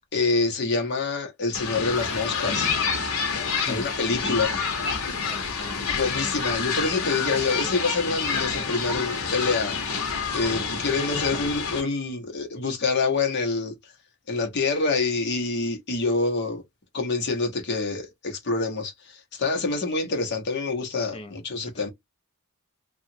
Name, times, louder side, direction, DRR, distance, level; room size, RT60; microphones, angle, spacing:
voice 1, 0.1-2.7 3.7-4.6 5.9-9.8 10.3-13.7 14.3-16.6 16.9-21.9, left 3 dB, 55° left, 0.9 m, -26 dB
sound 1, 1.5-11.8, left 5 dB, 80° left, 0.9 m, -28 dB
voice 2, 4.2-4.6 5.2-6.4 11.0-11.2 20.9-21.4 21.6-21.9, left 3 dB, 25° left, 0.5 m, -39 dB
2.8 x 2.4 x 2.7 m
head